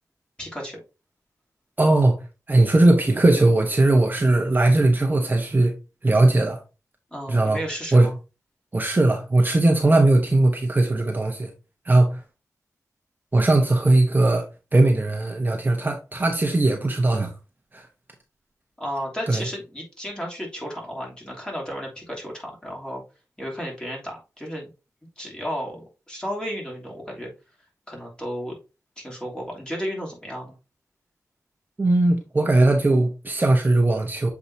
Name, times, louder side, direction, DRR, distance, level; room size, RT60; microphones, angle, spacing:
voice 1, 0.4-0.8 7.1-8.1 18.8-23.0 23.4-24.7 25.2-27.3 27.9-28.6 29.0-30.5, equal, 15° left, 3.0 m, -33 dB
voice 2, 1.8-5.7 6.0-6.6 7.3-7.6 7.9-8.1 8.7-11.5 11.8-12.2 13.3-14.5 14.7-17.3 17.7-17.9 19.3-19.5 31.8-34.3, right 2 dB, 30° right, 1.0 m, -19 dB
7.1 x 4.8 x 2.7 m
wide cardioid pair, 85°, 6 cm